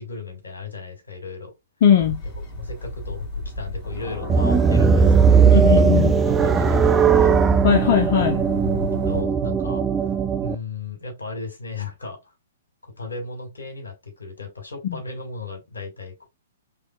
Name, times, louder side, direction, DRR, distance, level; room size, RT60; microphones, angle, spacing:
voice 1, 0.0-1.5 2.5-7.5 8.7-10.2 10.4-12.3 12.8-16.3, left 4 dB, 80° left, 1.9 m, -35 dB
voice 2, 1.8-2.2 5.5-6.2 7.6-8.4 14.8-15.0, left 9 dB, 45° left, 0.6 m, -19 dB
sound 1, 2.0-9.2, equal, 25° left, 2.3 m, -32 dB
sound 2, 4.3-10.6, right 6 dB, 15° right, 0.4 m, -18 dB
5.0 x 3.1 x 2.2 m
figure-of-eight pair, 120°, 0 cm